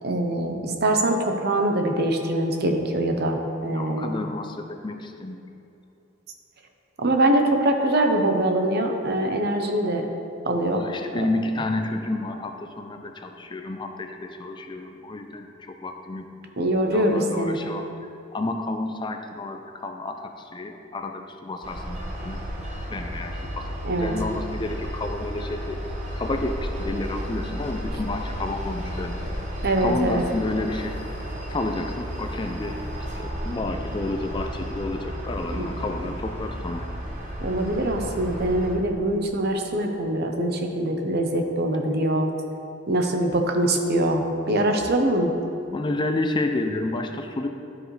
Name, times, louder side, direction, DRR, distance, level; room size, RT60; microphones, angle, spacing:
voice 1, 0.0-4.3 7.0-10.1 10.5-10.8 11.1-11.3 16.6-17.6 23.8-24.1 29.6-30.2 35.5-35.7 37.4-42.3 42.9-45.3, right 1 dB, 55° right, 4 dB, 0.7 m, -23 dB
voice 2, 3.7-5.5 10.8-16.3 16.9-17.9 18.3-22.4 22.9-25.8 26.2-29.2 29.8-31.0 31.5-32.8 33.2-36.9 45.7-47.5, left 2 dB, 25° left, 5 dB, 0.4 m, -30 dB
sound 1, 21.6-38.8, equal, 35° right, 1.1 m, -33 dB
12.5 x 5.0 x 3.2 m, 2.9 s
head